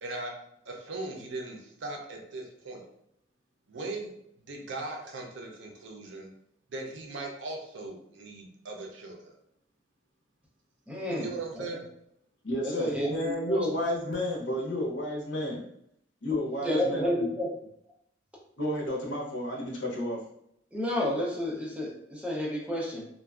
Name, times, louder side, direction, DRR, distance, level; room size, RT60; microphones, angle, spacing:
voice 1, 0.0-0.3 0.7-2.8 3.7-4.1 4.5-6.3 6.7-9.3 11.1-11.8, right 2 dB, 70° right, 1 dB, 0.5 m, -39 dB
voice 2, 10.9-11.3 11.5-11.8 12.6-13.6 16.6-17.5 20.7-23.1, left 1 dB, 5° right, -4 dB, 0.5 m, -31 dB
voice 3, 12.4-15.6 16.2-17.3 18.6-20.2, left 1 dB, 70° left, -2 dB, 0.7 m, -31 dB
2.5 x 2.2 x 2.3 m, 0.75 s
head